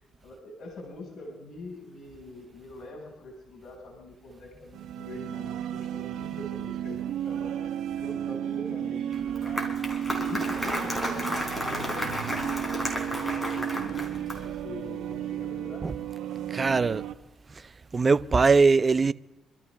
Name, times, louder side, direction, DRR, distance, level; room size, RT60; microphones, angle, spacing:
voice 1, 0.0-9.7 10.2-15.9, left 2 dB, 60° left, 4.8 m, -44 dB
sound 1, 4.7-17.1, right 10 dB, 80° right, 1.0 m, -33 dB
Applause, 9.1-14.6, equal, 10° left, 3.8 m, -32 dB
voice 2, 16.5-17.0 17.5-17.6 17.9-19.1, right 4 dB, 30° right, 0.5 m, -21 dB
26.5 x 13.5 x 3.4 m
cardioid pair, 90°, 0 cm